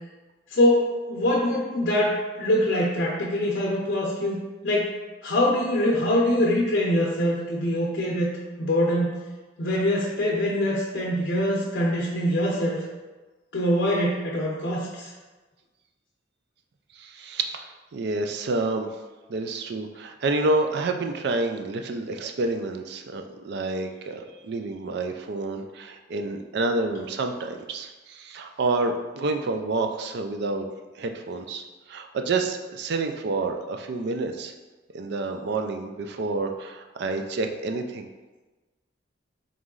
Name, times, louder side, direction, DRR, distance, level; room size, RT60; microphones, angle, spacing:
voice 1, 0.5-4.9 5.2-9.2 9.6-12.8 13.5-15.1, left 1 dB, 65° left, -4 dB, 0.6 m, -24 dB
voice 2, 17.0-18.9 19.3-30.7 31.0-34.5 34.9-38.1, right 3 dB, 60° right, 5 dB, 0.4 m, -29 dB
3.7 x 3.1 x 3.7 m, 1.2 s
head